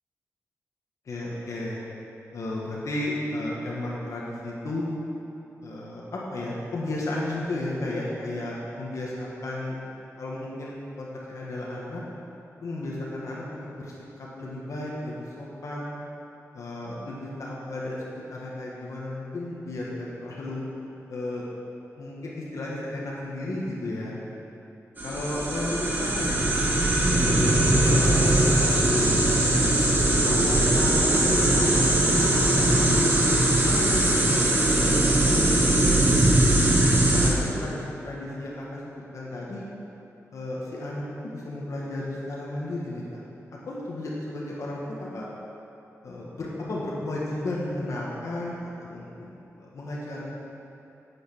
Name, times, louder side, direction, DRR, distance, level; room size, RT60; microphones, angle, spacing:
voice 1, 1.0-1.8 2.3-4.9 5.6-9.8 10.2-12.0 12.6-13.9 14.2-16.0 16.5-18.0 18.3-20.6 21.1-21.4 22.0-24.2 25.0-26.5 27.1-27.6 27.9-29.1 29.7-29.9 30.2-34.1 34.7-35.1 35.3-36.0 36.6-39.6 40.3-41.0 41.3-43.2 43.7-45.3 46.0-50.3, left 1 dB, 75° left, -5 dB, 1.7 m, -34 dB
sound 1, 25.0-37.3, right 1 dB, 35° right, 1.4 m, -21 dB
9.0 x 7.8 x 6.2 m, 2.9 s
wide cardioid pair, 160°, 5 cm